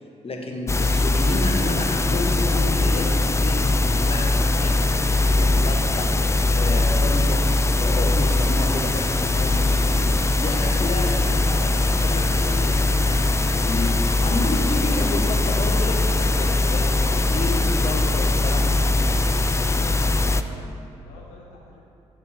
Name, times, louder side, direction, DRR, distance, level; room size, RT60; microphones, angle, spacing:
voice 1, 0.2-6.1 6.5-18.8, left 2 dB, 40° left, 1 dB, 1.4 m, -31 dB
sound 1, 0.7-20.4, left 2 dB, 20° left, 0.4 m, -21 dB
sound 2, 8.2-19.7, right 4 dB, 65° right, 0.7 m, -41 dB
voice 2, 19.6-21.8, left 2 dB, 85° left, -2 dB, 0.8 m, -45 dB
10.5 x 6.5 x 3.6 m, 2.8 s
hypercardioid pair, 45°, 15 cm